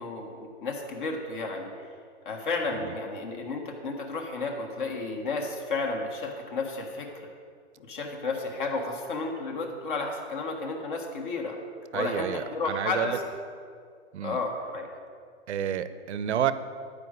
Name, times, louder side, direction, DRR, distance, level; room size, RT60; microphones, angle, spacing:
voice 1, 0.0-1.7 2.2-7.1 7.8-11.6 11.9-13.2 14.2-14.9, left 3 dB, 45° left, 1 dB, 1.6 m, -32 dB
voice 2, 11.9-13.2 14.1-14.4 15.5-16.5, right 9 dB, 70° right, 13 dB, 0.7 m, -29 dB
12.0 x 5.0 x 8.1 m, 2.2 s
hypercardioid pair, 170°, 35 cm